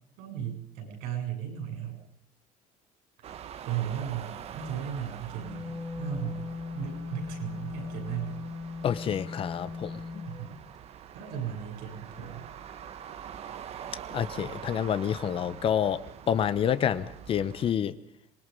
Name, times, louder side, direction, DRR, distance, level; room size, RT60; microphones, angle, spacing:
voice 1, 0.2-2.0 3.2-6.4 6.7-8.4 10.2-10.6 11.1-12.5, right 9 dB, 80° right, 4 dB, 8.0 m, -36 dB
sound 1, 3.2-17.7, right 9 dB, 40° right, 1.3 m, -45 dB
Wind instrument woodwind instrument, 5.3-10.4, left 4 dB, 5° left, 3.0 m, -38 dB
voice 2, 8.8-10.2 14.1-17.9, left 9 dB, 35° left, 14 dB, 1.0 m, -28 dB
26.5 x 20.5 x 5.4 m, 0.67 s
cardioid pair, 155°, 16 cm